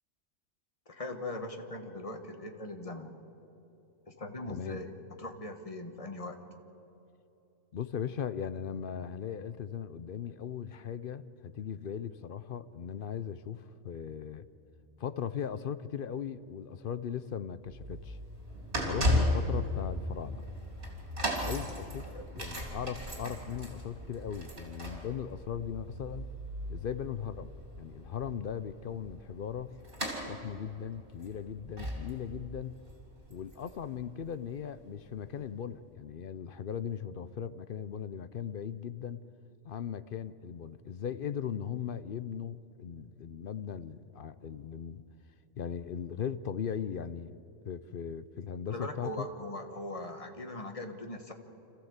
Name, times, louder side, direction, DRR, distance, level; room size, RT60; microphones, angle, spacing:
voice 1, 0.9-3.2 4.1-6.4 22.1-22.2 48.7-51.3, left 1 dB, 30° left, 5 dB, 1.5 m, -40 dB
voice 2, 4.5-4.8 7.7-14.5 15.0-18.2 18.8-20.4 21.4-26.3 26.7-29.7 30.3-32.7 33.3-39.2 39.6-45.0 45.6-47.4 47.6-49.3, left 8 dB, 55° left, 14 dB, 0.7 m, -38 dB
sound 1, 17.7-34.6 35.3-35.4, left 1 dB, 50° right, 3.5 m, -36 dB
26.5 x 14.5 x 8.1 m, 3.0 s
omnidirectional pair, 1.3 m